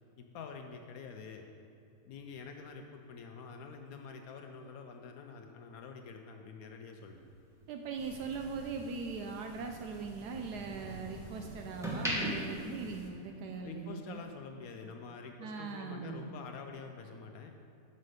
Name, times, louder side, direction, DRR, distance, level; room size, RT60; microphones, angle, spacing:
voice 1, 0.2-1.5 2.0-7.2 13.6-17.5, left 5 dB, 70° left, 4 dB, 0.9 m, -47 dB
sound 1, 7.0-9.3 9.7-11.2 11.6-13.7 14.0-14.3, equal, ahead, 1.0 m, -38 dB
voice 2, 7.7-14.2 15.4-16.3, right 5 dB, 75° right, 4 dB, 1.1 m, -40 dB
sound 2, 8.0-13.1, right 1 dB, 40° right, 0.8 m, -51 dB
6.3 x 5.5 x 6.4 m, 2.6 s
omnidirectional pair, 1.8 m